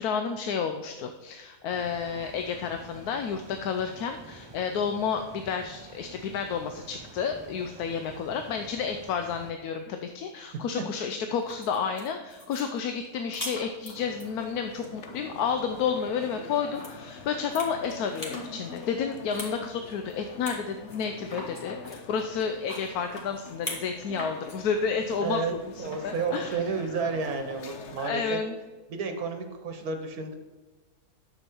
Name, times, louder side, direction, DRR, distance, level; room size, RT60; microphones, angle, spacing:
voice 1, 0.0-25.4 26.0-26.6 28.0-28.5, left 6 dB, 80° left, 6 dB, 1.1 m, -31 dB
sound 1, 1.7-9.5, right 3 dB, 45° right, 0.3 m, -49 dB
sound 2, 11.4-14.3 14.7-15.2 16.7-16.9 17.3-18.5 18.8-19.5 19.8-19.9 20.4-20.6 20.9-23.9 24.2-24.6 25.9-26.3, left 1 dB, 25° left, 1.9 m, -40 dB
sound 3, 13.9-28.1, left 4 dB, 55° left, 1.0 m, -45 dB
voice 2, 25.2-25.5 25.8-28.4 28.9-30.3, right 4 dB, 75° right, 6 dB, 1.3 m, -31 dB
9.9 x 7.1 x 4.4 m, 1.2 s
omnidirectional pair, 1.6 m